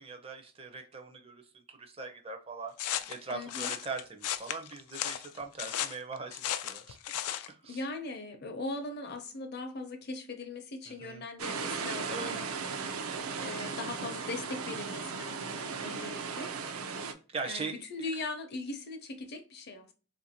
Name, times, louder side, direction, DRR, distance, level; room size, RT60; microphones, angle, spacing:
voice 1, 0.0-1.4 1.7-2.7 3.1-7.0 7.5-7.8 10.9-11.2 12.1-12.4 17.3-17.7, right 4 dB, 25° right, 0.5 m, -40 dB
sound 1, 2.8-7.5, left 11 dB, 90° left, 0.4 m, -35 dB
voice 2, 3.3-3.8 7.7-12.5 13.4-15.6 15.8-16.5 17.5-19.9, left 3 dB, 45° left, 0.6 m, -40 dB
sound 2, 11.4-17.1, right 5 dB, 75° right, 0.5 m, -37 dB
3.6 x 2.5 x 2.8 m
head